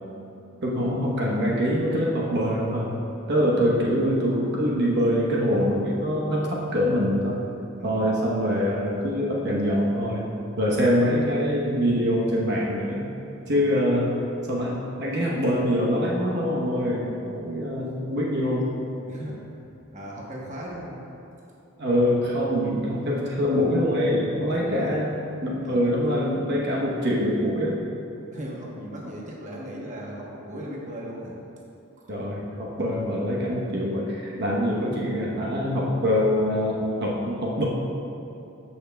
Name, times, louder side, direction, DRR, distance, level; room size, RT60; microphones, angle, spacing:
voice 1, 0.6-2.9 3.3-7.4 7.8-10.3 10.6-13.0 13.5-14.1 14.5-18.7 21.8-27.8 32.1-37.7, equal, 60° right, -4 dB, 1.0 m, -24 dB
voice 2, 3.3-3.7 6.6-6.7 7.8-8.1 13.4-13.8 19.1-19.4 19.9-21.1 21.4-21.5 24.5-25.0 25.6-25.8 28.3-31.3, equal, 40° right, -3 dB, 1.0 m, -38 dB
13.5 x 5.6 x 2.3 m, 2.8 s
head